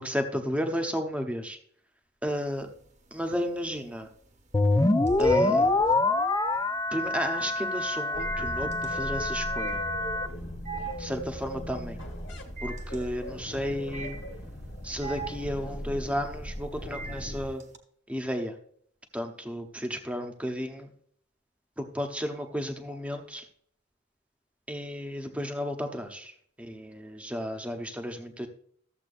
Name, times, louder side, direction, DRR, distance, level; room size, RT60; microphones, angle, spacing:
voice 1, 0.0-1.6 2.2-2.7 3.1-4.1 5.2-5.8 6.9-9.8 11.0-12.0 12.6-14.2 14.8-17.6 18.1-18.5 19.1-20.9 21.8-23.5 24.7-26.3 26.6-28.5, equal, 5° right, 5 dB, 0.9 m, -33 dB
sound 1, 2.3-2.9 3.3-17.8, right 6 dB, 40° right, 0.9 m, -42 dB
sound 2, 4.5-10.3, left 2 dB, 15° left, 0.4 m, -26 dB
sound 3, 8.1-17.5, equal, 75° left, 1.5 m, -38 dB
13.5 x 7.4 x 2.5 m, 0.62 s
head